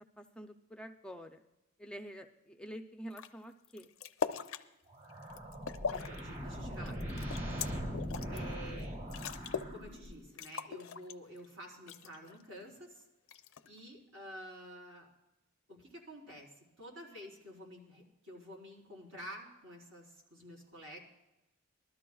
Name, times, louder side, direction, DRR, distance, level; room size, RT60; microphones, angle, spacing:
voice 1, 0.2-1.4 1.8-3.9, equal, 5° left, 4 dB, 0.4 m, -47 dB
sound 1, 3.1-3.3 3.6-4.6 5.1-6.2 6.5-8.4 8.8-8.9 9.1-9.8 10.0-10.1 10.4-11.5 11.9-12.4 13.3-13.8, left 6 dB, 75° left, 0.6 m, -39 dB
sound 2, 4.9-10.3, equal, 45° right, 2.6 m, -41 dB
voice 2, 5.9-7.0 8.3-9.0 9.7-13.0 13.6-15.1 15.7-21.0, equal, 80° right, -2 dB, 4.3 m, -50 dB
21.0 x 13.0 x 2.3 m, 0.95 s
head